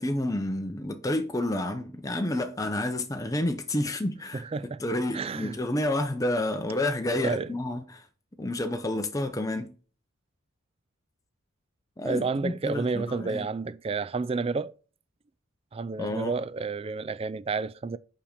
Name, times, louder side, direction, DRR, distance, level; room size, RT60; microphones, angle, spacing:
voice 1, 0.0-8.1 8.4-9.7 12.0-13.5 16.0-16.3, left 1 dB, 15° left, 0.7 m, -30 dB
voice 2, 4.3-4.8 5.1-5.5 7.2-7.5 12.0-14.7 15.7-18.0, right 4 dB, 25° right, 0.3 m, -30 dB
5.7 x 5.1 x 6.5 m
head